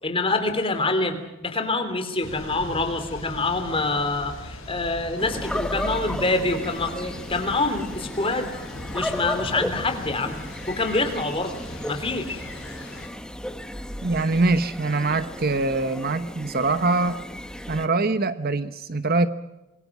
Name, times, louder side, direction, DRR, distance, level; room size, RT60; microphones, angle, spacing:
voice 1, 0.0-1.2 1.4-8.7 8.9-10.3 10.7-11.6 11.9-12.5, left 3 dB, 25° left, 8 dB, 3.1 m, -26 dB
Thunder / Rain, 2.2-13.1, left 1 dB, 60° left, 5.9 m, -40 dB
sound 1, 5.2-17.9, left 1 dB, 5° left, 1.1 m, -34 dB
voice 2, 14.0-17.2 17.7-19.3, right 3 dB, 45° right, 12 dB, 1.0 m, -23 dB
27.0 x 22.5 x 6.1 m, 0.99 s
head